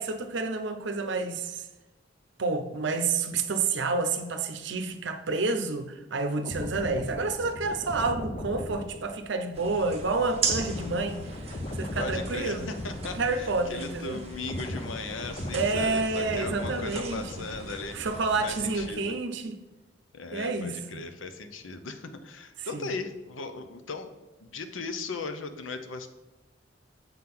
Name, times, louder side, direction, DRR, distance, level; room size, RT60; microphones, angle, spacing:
voice 1, 0.0-1.7 2.4-12.7 13.1-14.2 15.5-17.3 17.9-19.6 20.3-21.0 22.6-22.9, right 3 dB, 65° right, 0.7 m, -29 dB
sound 1, 6.4-13.9 14.2-17.9 18.2-18.4, left 1 dB, 35° left, 0.6 m, -38 dB
sound 2, 9.5-18.9, right 4 dB, 30° right, 1.0 m, -38 dB
voice 2, 12.0-18.0 18.4-19.1 20.1-24.1 24.4-26.1, left 3 dB, 85° left, 0.7 m, -38 dB
7.1 x 3.8 x 5.9 m
head